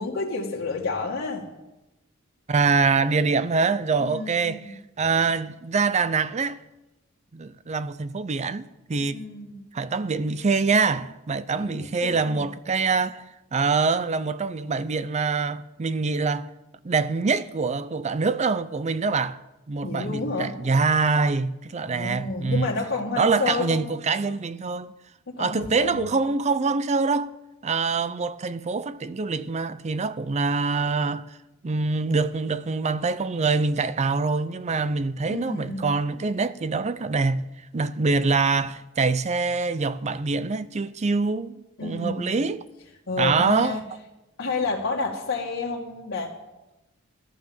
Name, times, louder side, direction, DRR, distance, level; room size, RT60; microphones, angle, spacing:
voice 1, 0.0-1.5 4.0-4.7 9.0-9.6 11.5-12.4 19.8-20.5 21.8-23.9 25.3-26.1 35.3-35.9 41.8-42.4 43.1-43.8 44.4-46.3, left 3 dB, 65° left, 2.1 m, -30 dB
voice 2, 2.5-6.6 7.3-9.2 9.7-16.5 16.8-19.4 19.7-22.7 23.2-24.9 25.4-27.3 27.6-31.4 31.6-37.5 37.7-41.5 41.8-42.6 43.2-43.8, right 4 dB, 35° right, 0.5 m, -25 dB
14.5 x 12.0 x 7.1 m
head